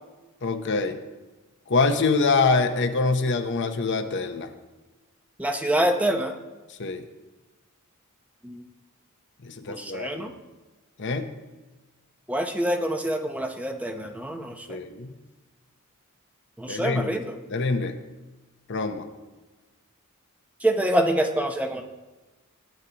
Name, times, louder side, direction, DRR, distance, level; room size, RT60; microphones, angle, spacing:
voice 1, 0.4-1.0 1.7-4.5 6.8-7.0 9.4-10.3 11.0-11.3 14.7-15.1 16.7-17.2 17.5-18.0 18.7-19.0, left 3 dB, 55° left, 7 dB, 0.8 m, -25 dB
voice 2, 5.4-6.3 8.4-8.6 9.7-10.3 12.3-14.7 16.6-17.3 20.6-21.8, right 1 dB, 5° right, 4 dB, 0.7 m, -26 dB
16.5 x 9.7 x 2.9 m, 1.2 s
head